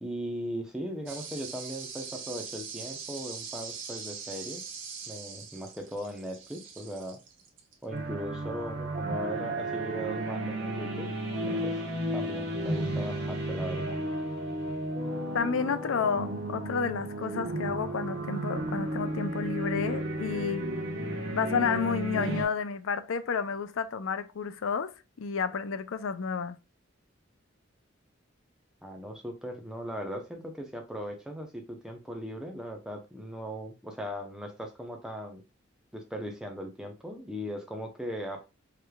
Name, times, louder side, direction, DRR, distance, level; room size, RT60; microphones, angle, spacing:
voice 1, 0.0-4.6 5.1-7.2 7.8-11.1 11.5-11.8 12.1-14.0 28.8-35.4 35.9-38.4, equal, 5° right, 0.7 m, -38 dB
sound 1, 1.1-7.7, right 6 dB, 75° right, 0.8 m, -42 dB
sound 2, 7.9-22.4, right 1 dB, 55° right, 1.1 m, -33 dB
voice 2, 15.3-20.7 21.3-24.9 25.2-26.6, left 5 dB, 85° left, 0.5 m, -31 dB
4.8 x 3.2 x 2.3 m
head